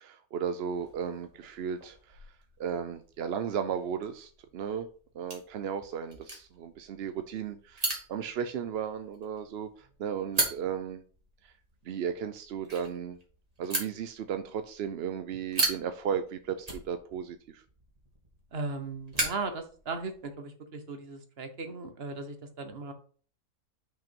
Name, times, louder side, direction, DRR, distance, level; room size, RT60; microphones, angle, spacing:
voice 1, 0.0-2.2 2.6-4.9 5.1-11.0 11.4-11.5 11.8-13.2 13.6-17.6, right 7 dB, 60° right, 9 dB, 0.7 m, -35 dB
sound 1, 0.7-20.3, right 2 dB, 25° right, 2.2 m, -39 dB
voice 2, 18.5-22.9, right 3 dB, 45° right, 7 dB, 1.3 m, -37 dB
5.7 x 5.6 x 5.2 m, 0.43 s
omnidirectional pair, 1.5 m